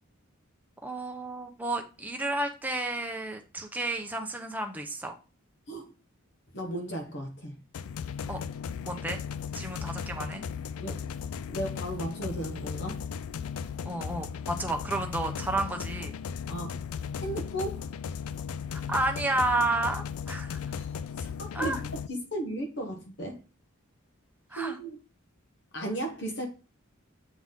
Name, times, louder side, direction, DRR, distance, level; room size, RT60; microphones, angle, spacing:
voice 1, 0.8-5.1 8.3-8.4 8.8-9.2 9.5-10.4 13.8-16.1 18.7-20.6 21.5-21.8 24.5-24.8, right 2 dB, 10° right, 0.8 m, -31 dB
voice 2, 6.5-7.6 10.8-11.0 11.5-13.0 16.5-16.8 17.2-17.8 20.7-20.9 21.2-23.4 24.5-25.0 25.7-26.5, right 1 dB, 55° left, 1.2 m, -35 dB
sound 1, 7.7-22.1, left 7 dB, 85° left, 0.4 m, -36 dB
7.2 x 4.0 x 3.7 m
head